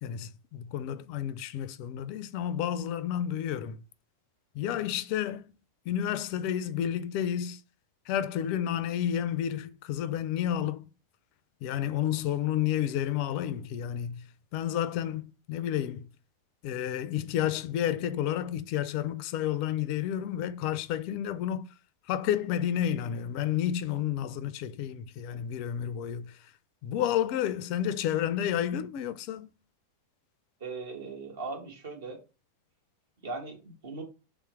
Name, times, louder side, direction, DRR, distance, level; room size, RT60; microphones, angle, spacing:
voice 1, 0.0-3.8 4.5-5.5 5.9-7.6 8.1-10.9 11.6-14.3 14.5-16.1 16.6-21.7 22.1-26.4 26.8-29.5, left 10 dB, 45° left, 0.3 m, -31 dB
voice 2, 30.6-32.2 33.2-34.0, right 3 dB, 60° right, 1.3 m, -39 dB
3.3 x 3.0 x 4.7 m
figure-of-eight pair, 90°, 0 cm